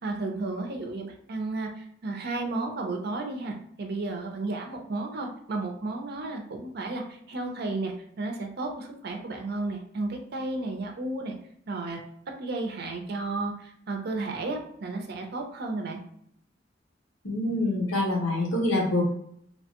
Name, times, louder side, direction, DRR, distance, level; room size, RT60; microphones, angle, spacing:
voice 1, 0.0-11.3 11.7-12.0 12.4-16.0, right 2 dB, 60° right, 2 dB, 0.6 m, -33 dB
voice 2, 17.2-19.0, left 2 dB, 85° left, -1 dB, 0.8 m, -25 dB
3.0 x 2.1 x 2.9 m, 0.68 s
head